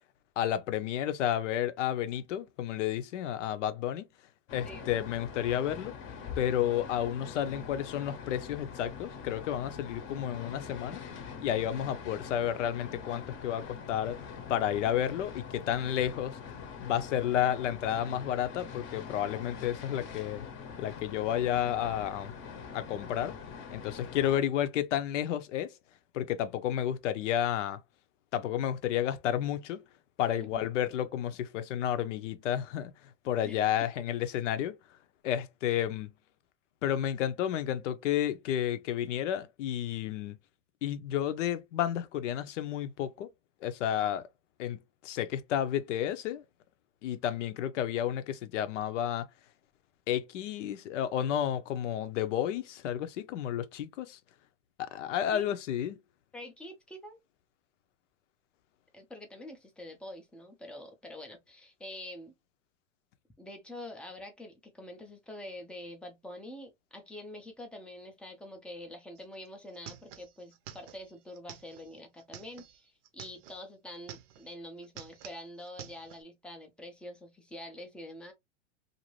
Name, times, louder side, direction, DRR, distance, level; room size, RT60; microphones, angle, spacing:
voice 1, 0.4-4.1 4.5-5.9 6.4-11.0 11.4-14.2 14.5-16.4 16.8-20.5 20.8-22.3 22.7-23.4 23.7-25.7 26.1-27.8 28.3-29.8 30.2-32.9 33.2-34.8 35.2-36.1 36.8-40.4 40.8-43.3 43.6-44.2 44.6-44.8 45.0-46.4 47.0-49.3 50.1-54.2 54.8-56.0, left 10 dB, 75° left, 0.7 m, -31 dB
sound 1, 4.5-24.4, left 6 dB, 35° left, 0.8 m, -44 dB
voice 2, 56.3-57.2 58.9-62.3 63.4-78.3, left 1 dB, 5° left, 0.4 m, -46 dB
sound 2, 69.2-69.3 69.5-73.6 73.9-74.6 74.8-76.2, right 10 dB, 45° right, 0.6 m, -49 dB
2.6 x 2.5 x 3.0 m
supercardioid pair, 135°, 37 cm